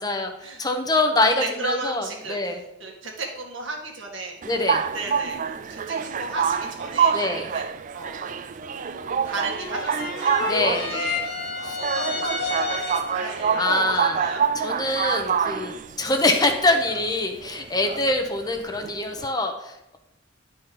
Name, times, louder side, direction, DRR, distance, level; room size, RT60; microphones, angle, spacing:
voice 1, 0.0-2.6 4.4-4.8 7.1-7.5 10.5-10.9 11.6-11.8 13.5-14.2 14.5-20.0, left 2 dB, 20° left, 4 dB, 0.9 m, -24 dB
voice 2, 1.6-2.4 2.8-4.4 4.9-7.6 7.9-8.3 8.7-10.3 10.9-14.4, right 2 dB, 75° right, 1 dB, 1.8 m, -35 dB
sound 1, 4.4-19.3, right 7 dB, 40° right, 0.4 m, -27 dB
sound 2, 9.5-13.3, left 3 dB, 55° left, 1.6 m, -30 dB
10.5 x 4.2 x 5.3 m, 0.87 s
head